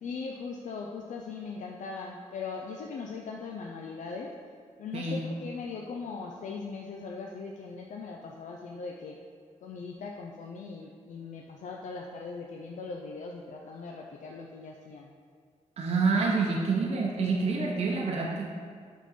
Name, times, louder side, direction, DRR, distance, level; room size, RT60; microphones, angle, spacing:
voice 1, 0.0-4.3 4.8-9.2 9.6-15.1, left 4 dB, 85° left, 0 dB, 0.4 m, -39 dB
voice 2, 15.8-18.4, right 4 dB, 55° right, -2 dB, 0.7 m, -27 dB
7.3 x 3.7 x 4.1 m, 2.1 s
wide cardioid pair, 145°, 13 cm